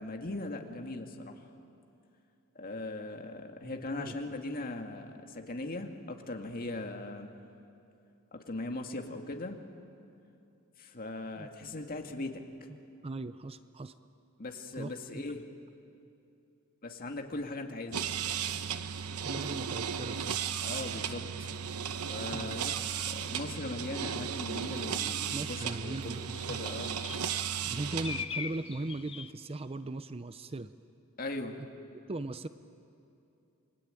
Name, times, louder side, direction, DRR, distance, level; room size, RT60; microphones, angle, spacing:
voice 1, 0.0-1.3 2.6-7.3 8.3-9.6 10.8-12.7 14.4-15.5 16.8-18.0 20.6-21.5 22.1-26.9 31.2-31.6, left 2 dB, 40° left, 4 dB, 2.0 m, -39 dB
voice 2, 3.6-4.2 11.4-11.5 12.7-12.8 13.0-13.9 14.8-15.2 19.2-20.4 22.3-22.6 25.3-26.6 27.2-27.3 27.7-30.7 32.1-32.5, right 2 dB, 25° right, 12 dB, 0.6 m, -39 dB
sound 1, 17.9-28.3, right 8 dB, 80° right, 1.0 m, -35 dB
sound 2, 22.8-23.0 23.5-23.9 24.8-24.9 25.2-29.3, left 7 dB, 25° left, 0.7 m, -43 dB
28.5 x 22.5 x 9.0 m, 2.7 s
head